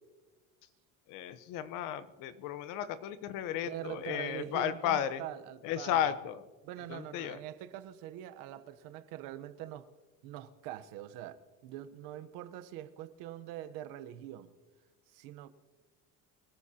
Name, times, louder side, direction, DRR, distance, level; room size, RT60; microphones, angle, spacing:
voice 1, 1.1-5.2 5.6-6.4 6.9-7.4, left 10 dB, 75° left, 13 dB, 1.1 m, -34 dB
voice 2, 3.6-6.0 6.6-9.9 10.2-14.5 15.1-15.5, right 12 dB, 90° right, 11 dB, 1.0 m, -44 dB
24.5 x 14.5 x 2.9 m, 1.3 s
cardioid pair, 170°, 32 cm